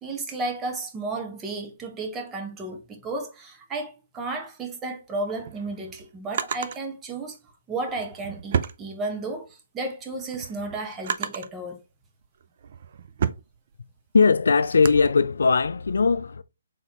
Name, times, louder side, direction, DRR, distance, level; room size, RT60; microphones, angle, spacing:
voice 1, 0.0-7.4 7.7-11.8, right 2 dB, 15° right, 0.9 m, -33 dB
Drawer open or close, 5.1-6.8 7.8-9.5 9.9-11.6 12.2-15.1, right 7 dB, 50° right, 0.4 m, -32 dB
voice 2, 14.1-16.4, left 4 dB, 70° left, 0.3 m, -19 dB
4.1 x 3.6 x 2.9 m
figure-of-eight pair, 140°, 0 cm